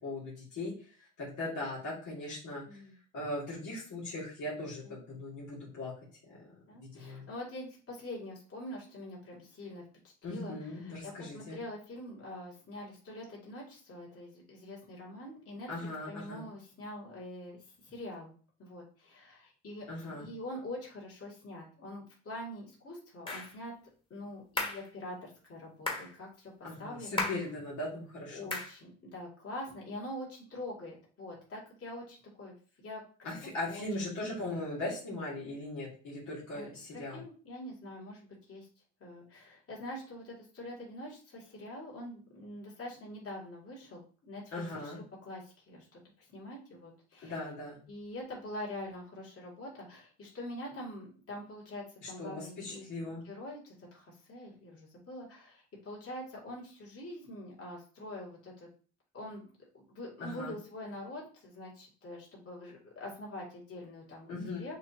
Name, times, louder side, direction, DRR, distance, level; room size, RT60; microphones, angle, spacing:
voice 1, 0.0-0.7 1.2-2.8 3.1-5.9 6.3-6.5 6.8-7.3 10.2-11.6 15.7-16.4 19.9-20.3 26.6-28.5 33.2-37.2 44.5-45.0 47.2-47.8 52.0-53.2 60.2-60.5 64.3-64.6, left 2 dB, 75° left, -7 dB, 2.0 m, -39 dB
voice 2, 2.6-3.0 4.8-5.0 6.7-18.3 18.6-19.9 20.2-23.8 24.1-27.3 28.3-33.3 33.6-34.2 36.5-38.7 39.0-47.4 47.9-52.9 53.2-58.7 59.1-59.5 59.9-64.8, left 1 dB, 50° left, -4 dB, 2.4 m, -45 dB
sound 1, 23.3-23.5 24.6-24.9 25.9-26.1 27.2-27.5 28.5-28.8, left 2 dB, 15° left, 1.4 m, -34 dB
6.5 x 2.8 x 2.8 m, 0.41 s
cardioid pair, 90°, 30 cm